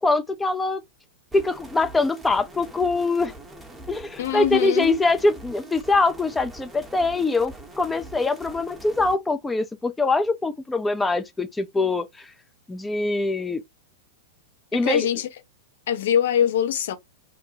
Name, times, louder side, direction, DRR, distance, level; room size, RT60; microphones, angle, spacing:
voice 1, 0.0-0.8 1.3-3.3 3.9-12.3 12.7-13.6 14.7-15.1, left 3 dB, 10° left, 0.4 m, -23 dB
sound 1, 1.3-9.1, right 2 dB, 10° right, 0.8 m, -43 dB
voice 2, 4.2-5.0 14.7-15.3 15.9-17.0, left 9 dB, 65° left, 0.6 m, -23 dB
2.6 x 2.2 x 2.9 m
hypercardioid pair, 100°, 0 cm